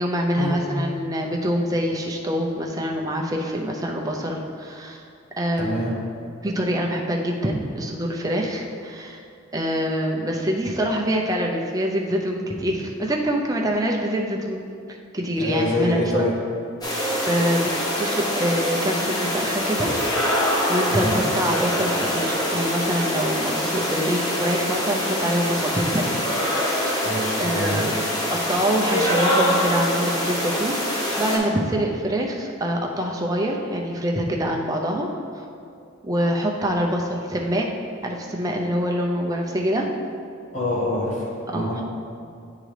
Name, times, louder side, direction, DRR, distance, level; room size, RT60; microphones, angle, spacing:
voice 1, 0.0-5.0 5.4-5.8 6.4-9.2 9.5-14.6 14.9-16.3 17.3-17.7 18.0-19.9 20.7-26.2 26.5-27.0 27.4-28.0 28.3-35.1 35.3-35.4 36.0-37.7 38.0-39.9 41.5-41.8, equal, 15° right, 0 dB, 0.5 m, -25 dB
voice 2, 5.6-5.9 15.4-16.3 20.9-21.2 27.0-27.9 40.5-41.8, left 1 dB, 35° left, -5 dB, 1.2 m, -26 dB
sound 1, 16.8-31.4, equal, 20° left, 0.8 m, -24 dB
9.0 x 3.8 x 3.3 m, 2.4 s
head